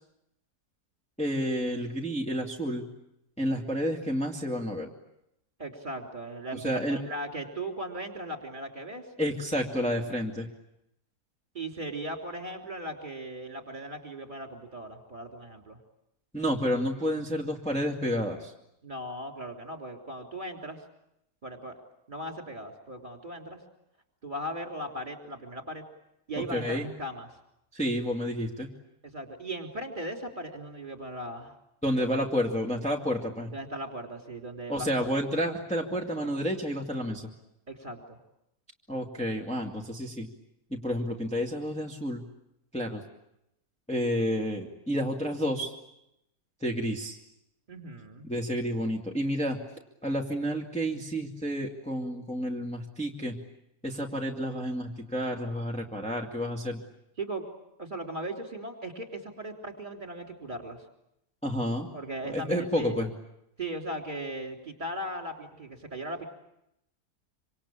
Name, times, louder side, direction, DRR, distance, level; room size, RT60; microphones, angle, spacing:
voice 1, 1.2-2.8 3.4-4.9 6.5-7.0 9.2-10.5 16.3-18.5 26.4-26.9 27.7-28.7 31.8-33.5 34.7-37.3 38.9-40.3 40.7-42.2 42.7-43.0 43.9-45.7 46.6-47.2 48.3-49.6 50.0-53.4 53.8-56.8 61.4-61.9 62.2-63.1, equal, 5° left, -1 dB, 2.2 m, -30 dB
voice 2, 5.6-9.1 11.5-15.8 18.8-20.8 21.4-21.8 22.1-23.6 24.2-25.8 26.3-27.3 29.0-31.5 33.5-34.9 37.7-38.2 47.7-48.3 57.2-57.5 57.8-60.8 61.9-63.0 63.6-66.3, right 1 dB, 30° right, 3 dB, 3.6 m, -38 dB
26.0 x 26.0 x 8.7 m, 0.82 s
omnidirectional pair, 1.7 m